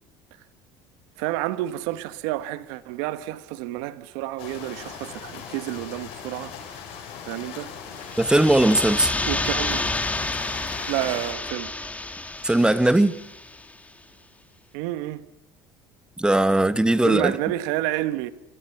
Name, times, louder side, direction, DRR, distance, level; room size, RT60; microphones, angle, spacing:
voice 1, 1.2-6.8 7.3-7.7 9.2-10.0 10.9-11.7 14.7-15.2 17.0-18.3, right 15 dB, 75° right, 1.3 m, -29 dB
sound 1, 4.4-11.3, left 7 dB, 70° left, 7.7 m, -39 dB
sound 2, 8.0-13.6, left 2 dB, 15° left, 2.4 m, -30 dB
voice 2, 8.2-9.1 12.4-13.2 16.2-17.3, right 1 dB, 10° right, 1.2 m, -19 dB
29.5 x 25.5 x 5.9 m
supercardioid pair, 80°, 10 cm